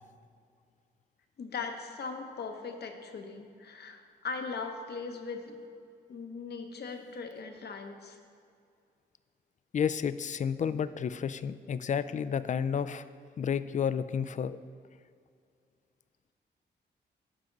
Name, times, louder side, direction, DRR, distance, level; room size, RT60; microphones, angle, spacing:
voice 1, 1.4-5.6 6.1-8.2, left 4 dB, 65° left, 5 dB, 0.9 m, -39 dB
voice 2, 9.7-13.0 13.4-14.6, left 7 dB, 45° left, 14 dB, 0.4 m, -31 dB
13.5 x 4.9 x 3.9 m, 2.3 s
cardioid pair, 75°, 18 cm